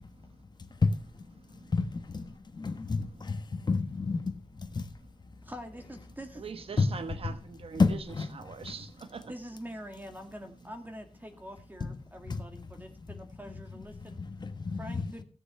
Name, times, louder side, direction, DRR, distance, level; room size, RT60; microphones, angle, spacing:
voice 1, 1.7-2.2 2.5-3.4 3.7-4.2 4.7-4.8 6.8-6.9 7.2-7.3 7.8-8.3 8.7-8.8 11.8-11.9 12.3-12.4 14.2-15.0, left 4 dB, 40° left, 1.2 m, -29 dB
voice 2, 5.4-6.5 9.3-11.1 11.4-14.2 14.8-15.2, equal, 15° right, 1.8 m, -45 dB
voice 3, 6.4-8.0 8.3-9.2, right 5 dB, 60° right, 1.0 m, -41 dB
16.0 x 7.0 x 5.6 m
wide cardioid pair, 90°, 11 cm